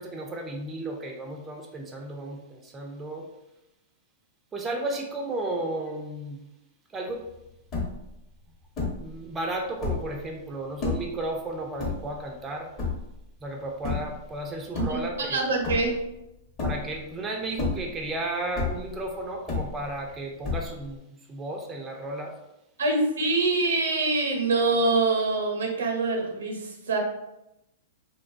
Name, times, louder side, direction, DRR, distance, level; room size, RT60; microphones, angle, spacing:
voice 1, 0.0-3.3 4.5-6.4 6.9-7.3 9.0-12.7 13.4-15.5 16.6-22.4, right 2 dB, 20° right, 1 dB, 0.3 m, -34 dB
sound 1, 7.3-7.4 7.5-8.2 8.8-9.2 9.7-10.2 10.8-11.2 11.8-12.4 12.8-13.2 13.8-14.2 14.6-15.3 15.6-16.2 16.6-17.1 17.5-18.1 18.6-19.0 19.5-20.1 20.4-21.0, left 3 dB, 35° left, 0.8 m, -30 dB
voice 2, 14.9-16.0 22.8-27.0, right 3 dB, 80° right, 2 dB, 0.6 m, -25 dB
2.5 x 2.2 x 2.4 m, 0.90 s
hypercardioid pair, 120°, 0 cm